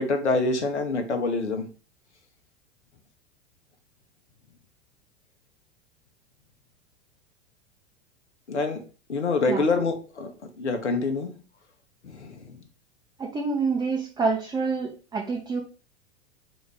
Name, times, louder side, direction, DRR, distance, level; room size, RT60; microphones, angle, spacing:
voice 1, 0.0-1.7 8.5-8.8 9.1-10.3 10.6-11.3 12.0-12.5, left 3 dB, 85° left, 6 dB, 0.9 m, -26 dB
voice 2, 13.2-15.6, right 4 dB, 10° right, -1 dB, 0.6 m, -27 dB
4.0 x 2.5 x 3.3 m, 0.36 s
hypercardioid pair, 95°, 33 cm